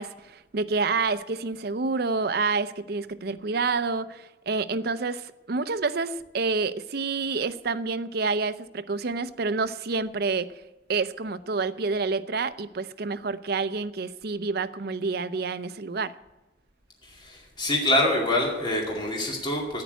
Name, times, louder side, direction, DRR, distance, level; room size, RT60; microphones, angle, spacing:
voice 1, 0.0-10.5 10.9-16.1, right 4 dB, 55° right, 12 dB, 0.6 m, -28 dB
voice 2, 17.0-19.8, left 1 dB, 25° left, -2 dB, 2.2 m, -25 dB
10.5 x 9.2 x 9.4 m, 1.1 s
head